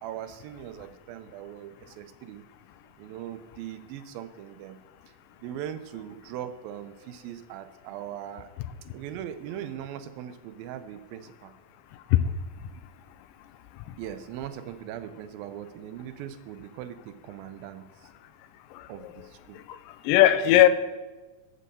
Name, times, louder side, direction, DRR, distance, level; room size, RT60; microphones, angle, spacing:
voice 1, 0.0-2.4 3.0-4.8 5.4-8.5 8.9-11.5 14.0-17.9 18.9-19.6 20.2-20.3, right 10 dB, 85° right, 2.4 m, -40 dB
voice 2, 18.7-19.1 19.5-20.7, left 13 dB, 80° left, 2.0 m, -21 dB
7.6 x 6.4 x 6.8 m
omnidirectional pair, 4.1 m